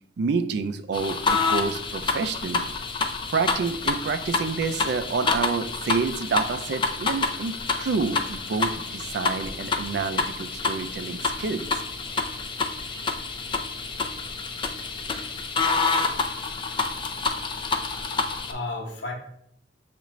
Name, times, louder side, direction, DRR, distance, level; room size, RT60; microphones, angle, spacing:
voice 1, 0.2-2.7 3.3-11.8 12.9-13.1, right 4 dB, 60° right, 9 dB, 0.4 m, -28 dB
sound 1, 0.9-18.5, left 4 dB, 25° left, 0.3 m, -28 dB
voice 2, 17.6-18.2 18.5-19.1, left 2 dB, 65° left, 1 dB, 0.9 m, -35 dB
6.7 x 2.5 x 3.1 m, 0.70 s
head